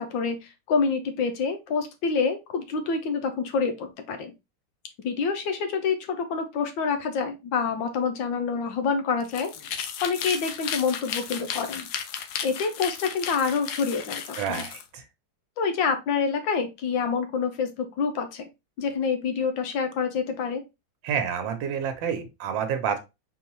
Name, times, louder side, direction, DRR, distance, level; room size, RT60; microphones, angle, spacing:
voice 1, 0.0-4.3 5.0-11.9 12.4-14.6 15.6-18.5 18.8-20.6, left 5 dB, 85° left, 7 dB, 1.6 m, -27 dB
sound 1, 9.2-14.8, left 8 dB, 70° left, 1.1 m, -34 dB
voice 2, 14.4-15.0 21.0-23.0, right 7 dB, 90° right, 7 dB, 1.5 m, -29 dB
4.1 x 3.9 x 2.9 m, 0.23 s
omnidirectional pair, 2.0 m